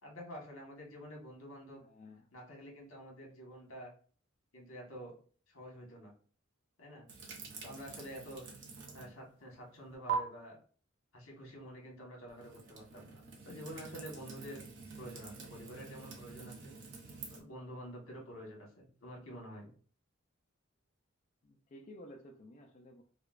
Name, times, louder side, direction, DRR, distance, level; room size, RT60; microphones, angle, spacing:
voice 1, 0.0-1.8 2.3-3.9 4.5-5.1 5.5-6.1 6.8-7.1 7.6-8.5 8.9-10.6 11.1-14.6 15.0-16.7 17.3-19.7, equal, 75° left, -1 dB, 1.3 m, -48 dB
voice 2, 1.8-2.3 21.4-23.0, left 1 dB, 35° left, 1 dB, 0.4 m, -53 dB
sound 1, 7.1-9.2 9.5-10.1 12.3-17.4, right 8 dB, 60° right, 0.7 m, -46 dB
4.9 x 2.2 x 2.4 m, 0.43 s
head